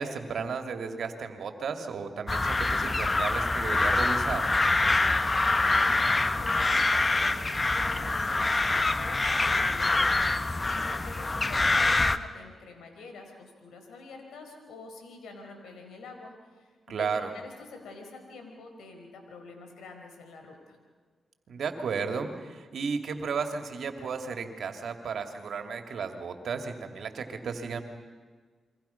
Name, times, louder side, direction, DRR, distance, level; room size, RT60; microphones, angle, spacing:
voice 1, 0.0-4.5 16.9-17.3 21.5-27.8, right 5 dB, 70° right, 6 dB, 2.5 m, -34 dB
sound 1, 2.3-12.2, left 2 dB, 30° left, 1.2 m, -25 dB
voice 2, 5.7-20.8, left 3 dB, 85° left, 4 dB, 4.8 m, -47 dB
29.0 x 23.5 x 5.8 m, 1.5 s
supercardioid pair, 50°, 0 cm